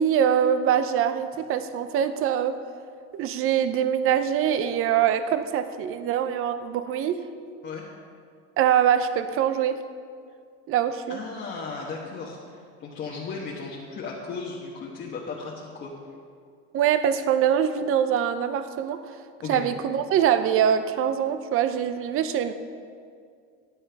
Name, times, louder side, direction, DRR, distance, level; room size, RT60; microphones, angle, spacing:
voice 1, 0.0-2.6 3.1-7.2 8.6-9.8 10.7-11.2 16.7-19.0 19.5-22.5, right 9 dB, 45° right, 10 dB, 0.6 m, -23 dB
voice 2, 11.1-15.9 19.4-19.6, left 4 dB, 35° left, -4 dB, 1.3 m, -36 dB
14.5 x 9.5 x 3.5 m, 2.2 s
cardioid pair, 135°, 31 cm